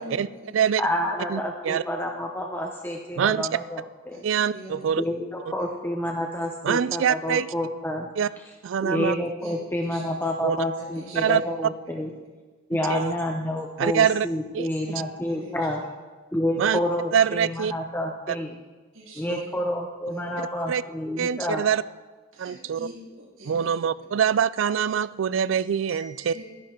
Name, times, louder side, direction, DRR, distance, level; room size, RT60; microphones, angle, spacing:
voice 1, 0.0-0.6 1.0-1.1 4.1-4.2 4.5-4.9 5.6-5.7 9.4-9.5 9.8-10.0 10.8-11.2 11.8-12.1 14.8-15.0 15.2-15.5 18.9-19.5 20.1-20.4 22.3-23.7 25.9-26.4, right 1 dB, 80° right, -3 dB, 3.4 m, -44 dB
voice 2, 0.8-4.2 5.0-8.1 8.8-12.1 12.7-15.8 16.3-18.5 19.2-21.6, left 1 dB, 10° left, 1 dB, 0.7 m, -29 dB
voice 3, 1.3-1.8 3.2-3.5 4.2-5.0 6.6-7.5 8.2-8.3 8.6-9.2 10.4-10.6 11.2-11.4 12.9-13.2 13.8-14.3 14.5-15.0 16.6-16.8 17.1-17.7 18.3-18.4 19.3-19.4 20.7-20.8 21.2-21.8 22.4-22.8 23.5-26.3, right 8 dB, 65° right, 19 dB, 0.3 m, -24 dB
12.0 x 10.5 x 4.5 m, 1.3 s
head